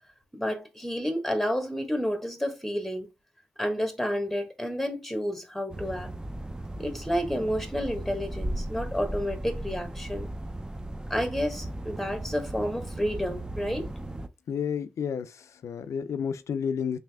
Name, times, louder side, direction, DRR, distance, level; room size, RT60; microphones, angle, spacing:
voice 1, 0.3-3.1 3.6-6.1 6.8-10.3 11.1-13.9, equal, 5° left, 1.2 m, -30 dB
sound 1, 5.7-14.3, right 1 dB, 15° right, 0.5 m, -36 dB
voice 2, 14.5-17.0, left 7 dB, 80° left, 0.4 m, -31 dB
3.3 x 2.7 x 3.4 m
cardioid pair, 55°, 5 cm